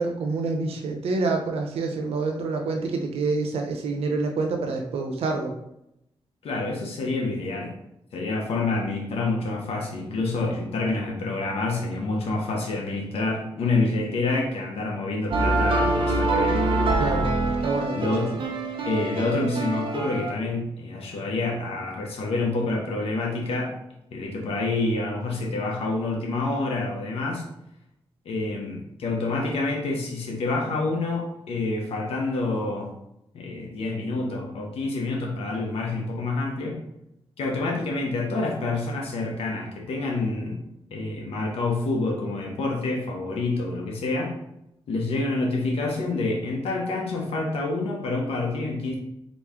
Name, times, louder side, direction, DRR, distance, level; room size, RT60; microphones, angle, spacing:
voice 1, 0.0-5.5 17.0-18.3, right 3 dB, 90° right, 4 dB, 0.7 m, -27 dB
voice 2, 6.4-7.7 8.1-16.6 17.9-18.3 18.8-23.8 24.1-27.4 28.2-32.9 33.3-36.8 37.4-40.6 40.9-44.3 44.9-49.0, left 3 dB, 90° left, 0 dB, 1.0 m, -27 dB
sound 1, 15.3-20.3, right 2 dB, 60° right, 0.8 m, -25 dB
3.9 x 3.1 x 3.6 m, 0.82 s
cardioid pair, 90°, 10 cm